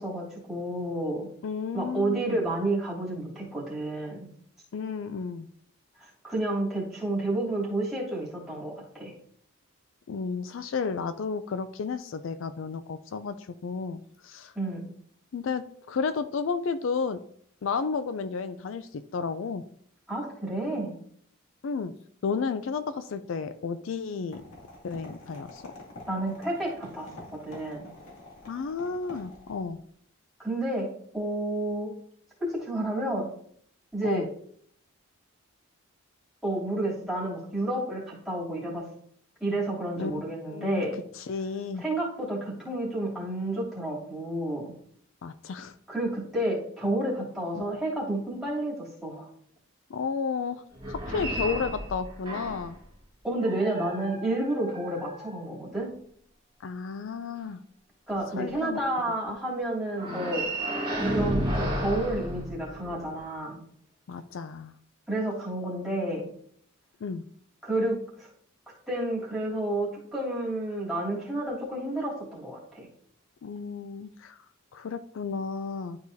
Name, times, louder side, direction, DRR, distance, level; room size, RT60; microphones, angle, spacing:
voice 1, 0.0-1.3 1.7-4.3 6.0-9.1 14.5-14.8 20.1-20.9 26.1-27.1 27.4-27.9 30.4-30.9 31.1-31.9 32.4-33.3 33.9-34.3 36.4-38.8 39.4-41.0 41.8-44.7 45.9-49.3 53.2-55.9 58.1-60.4 61.1-63.6 65.1-66.3 67.6-68.3 68.9-72.9, right 1 dB, ahead, -8 dB, 3.0 m, -30 dB
voice 2, 1.4-2.4 4.7-5.5 10.1-14.5 15.3-17.2 17.6-19.6 21.6-21.9 22.2-24.4 24.8-25.7 28.5-29.8 34.0-34.3 40.0-40.8 41.1-41.8 45.2-45.8 47.5-47.6 49.9-52.8 56.6-57.6 58.4-58.8 60.1-60.2 64.1-64.7 67.0-67.2 73.4-74.4 74.7-76.0, left 5 dB, 60° left, 11 dB, 0.4 m, -32 dB
sound 1, 24.3-29.7, left 2 dB, 85° left, 2.5 m, -47 dB
sound 2, 50.7-52.8 53.4-55.8 59.9-63.1, right 1 dB, 20° right, 1.6 m, -32 dB
11.5 x 4.7 x 2.7 m, 0.63 s
head